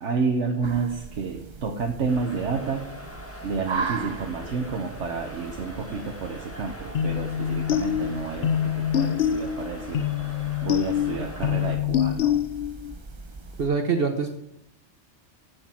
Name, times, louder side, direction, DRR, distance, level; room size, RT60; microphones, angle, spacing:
voice 1, 0.0-2.9 3.4-10.1 10.6-12.4, right 5 dB, 75° right, 2 dB, 1.3 m, -30 dB
sound 1, 0.6-13.7, right 4 dB, 30° right, 0.5 m, -39 dB
sound 2, 2.1-11.7, equal, 10° left, 1.6 m, -43 dB
Bright Line Piano Loop, 6.9-12.9, left 10 dB, 65° left, 0.8 m, -25 dB
voice 2, 13.6-14.3, right 5 dB, 55° right, 6 dB, 1.0 m, -24 dB
14.5 x 6.4 x 4.4 m, 0.79 s
omnidirectional pair, 1.2 m